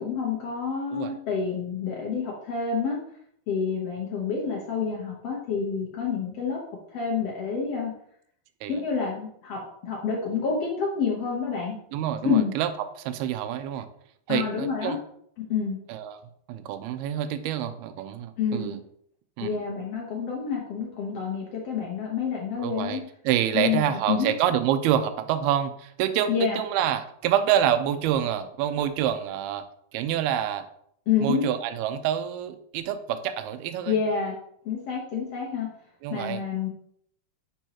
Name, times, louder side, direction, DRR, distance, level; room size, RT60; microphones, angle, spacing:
voice 1, 0.0-3.0 3.5-6.6 6.9-7.9 8.7-11.8 12.2-12.5 14.3-15.0 15.5-15.8 18.4-18.7 19.4-23.0 23.5-24.3 26.3-26.6 31.1-31.4 33.9-34.3 34.6-35.7 36.1-36.7, left 6 dB, 85° left, -2 dB, 1.3 m, -28 dB
voice 2, 11.9-12.7 13.0-13.9 14.3-15.0 15.9-16.2 16.5-18.8 19.4-19.5 22.6-29.7 29.9-30.7 31.2-34.0 36.0-36.4, right 10 dB, 85° right, 10 dB, 2.4 m, -27 dB
10.0 x 5.4 x 3.0 m, 0.69 s
omnidirectional pair, 4.7 m